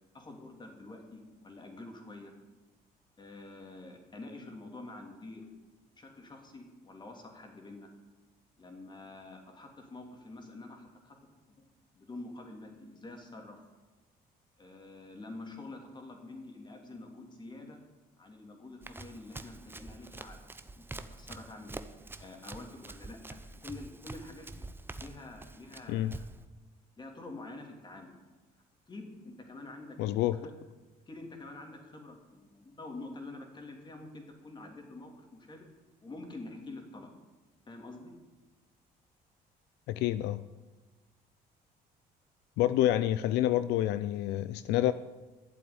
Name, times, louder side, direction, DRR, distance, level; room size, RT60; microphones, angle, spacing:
voice 1, 0.1-2.3 3.2-5.5 5.9-7.9 8.6-11.2 11.9-13.6 14.6-17.8 18.2-20.4 20.7-21.8 22.2-24.7 25.0-26.2 27.0-28.1 28.9-30.0 30.4-30.5 31.1-35.7 36.0-37.1 37.7-38.1, left 2 dB, 25° left, 2 dB, 3.0 m, -47 dB
Run, 18.8-26.5, right 2 dB, 15° right, 0.7 m, -46 dB
voice 2, 30.0-30.4 39.9-40.4 42.6-44.9, left 13 dB, 85° left, 14 dB, 0.5 m, -28 dB
12.0 x 7.6 x 9.7 m, 1.2 s
cardioid pair, 110°, 17 cm